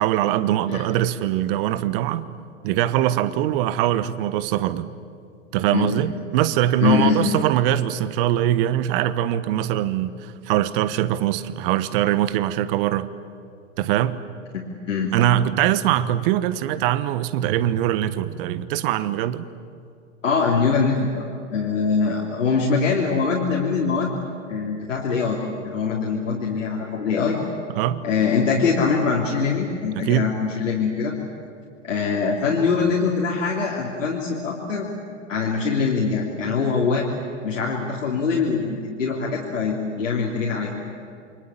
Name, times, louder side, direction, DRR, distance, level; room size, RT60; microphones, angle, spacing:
voice 1, 0.0-2.3 2.6-4.9 5.5-13.1 13.8-14.2 15.1-19.5 27.8-28.0 29.9-30.3, right 12 dB, 45° right, 14 dB, 1.5 m, -22 dB
voice 2, 6.8-7.2 14.9-15.3 20.2-21.2 21.5-24.1 24.5-25.4 25.6-27.4 28.0-31.1 31.8-34.9 35.3-37.1 37.4-40.8, left 5 dB, 75° left, -3 dB, 3.7 m, -23 dB
28.0 x 24.0 x 8.8 m, 2.4 s
figure-of-eight pair, 100°, 38 cm